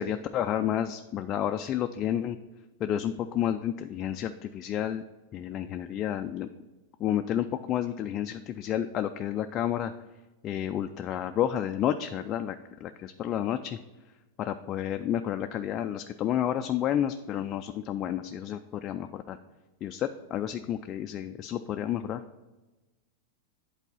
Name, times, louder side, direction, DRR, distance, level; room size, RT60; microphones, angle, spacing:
voice 1, 0.0-2.4 2.8-5.0 5.3-6.5 7.0-9.9 10.4-13.8 14.4-19.4 19.8-22.2, left 10 dB, 35° left, 7 dB, 0.3 m, -30 dB
8.2 x 4.0 x 5.4 m, 1.1 s
hypercardioid pair, 105°, 0 cm